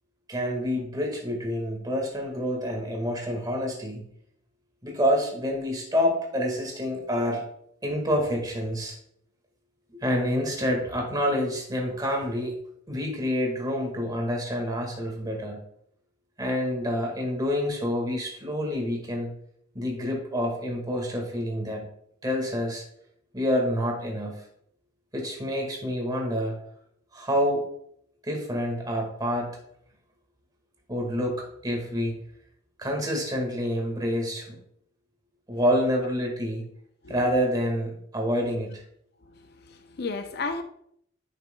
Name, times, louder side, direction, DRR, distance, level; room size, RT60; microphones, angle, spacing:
voice 1, 0.3-4.0 4.8-7.4 7.8-8.9 10.0-12.6 12.9-15.6 16.4-19.3 19.7-21.9 22.2-22.8 23.3-24.3 25.1-26.5 27.1-27.6 28.2-29.6 30.9-32.1 32.8-34.6 35.5-36.6 37.1-38.8, equal, 20° right, 1.6 m, -27 dB
voice 2, 39.6-40.6, left 3 dB, 55° left, 0.5 m, -33 dB
9.3 x 6.0 x 2.2 m
head